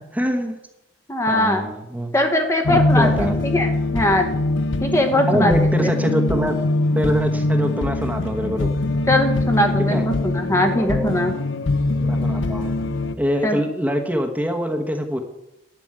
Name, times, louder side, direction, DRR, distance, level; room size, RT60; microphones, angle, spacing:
voice 1, 0.1-0.6 1.3-2.1 2.7-3.4 5.1-6.6 6.9-8.7 9.9-10.1 10.7-11.1 12.0-12.7 13.2-15.2, equal, 10° right, 4 dB, 1.0 m, -24 dB
voice 2, 1.1-1.7 2.1-4.5 4.8-5.5 9.1-11.3 13.4-13.6, left 1 dB, 15° left, 5 dB, 1.0 m, -21 dB
sound 1, 2.6-13.1, left 2 dB, 75° left, 0.7 m, -22 dB
11.0 x 6.1 x 8.9 m, 0.89 s
head